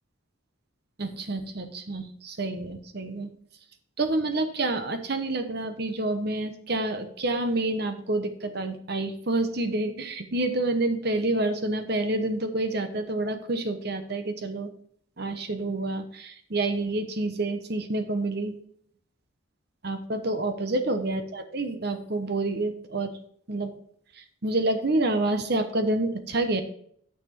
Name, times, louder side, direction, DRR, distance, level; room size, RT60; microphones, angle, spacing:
voice 1, 1.0-3.3 4.0-14.7 15.2-18.5 19.8-23.1 23.5-23.7 24.1-26.6, right 2 dB, 50° right, 8 dB, 1.0 m, -28 dB
9.3 x 6.0 x 4.4 m, 0.63 s
head